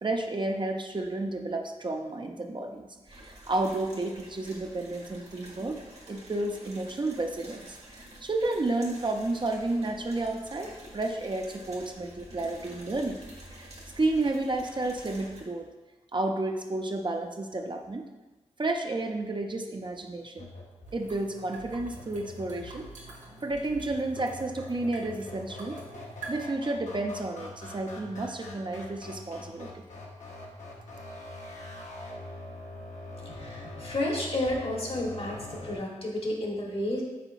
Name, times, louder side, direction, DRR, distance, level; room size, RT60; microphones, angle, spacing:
voice 1, 0.0-5.8 6.1-13.3 13.5-15.7 16.1-18.1 18.6-20.5 20.9-22.9 23.4-25.8 26.3-29.9, right 2 dB, 40° right, 3 dB, 0.5 m, -31 dB
sound 1, 3.1-15.4, right 1 dB, 60° right, 1.3 m, -49 dB
sound 2, 20.4-35.8, left 1 dB, 75° left, 0.8 m, -44 dB
sound 3, 20.8-26.4, right 2 dB, 90° right, 0.8 m, -47 dB
voice 2, 33.3-37.0, left 1 dB, 50° left, -1 dB, 1.1 m, -31 dB
5.5 x 3.9 x 2.4 m, 1.1 s
cardioid pair, 40°, 13 cm